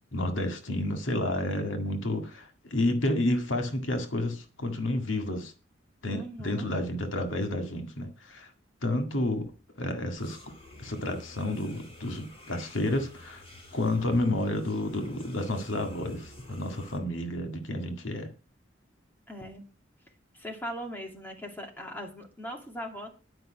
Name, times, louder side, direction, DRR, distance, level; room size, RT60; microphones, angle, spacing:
voice 1, 0.1-5.5 6.0-8.5 8.8-9.5 9.8-10.4 10.8-13.4 13.7-18.3, left 1 dB, 80° left, 5 dB, 1.9 m, -30 dB
voice 2, 6.1-6.7 19.3-19.6 20.3-23.1, equal, 10° left, 1 dB, 2.5 m, -39 dB
sound 1, 10.2-17.0, left 2 dB, 30° left, 3.0 m, -50 dB
11.0 x 5.3 x 7.8 m, 0.33 s
head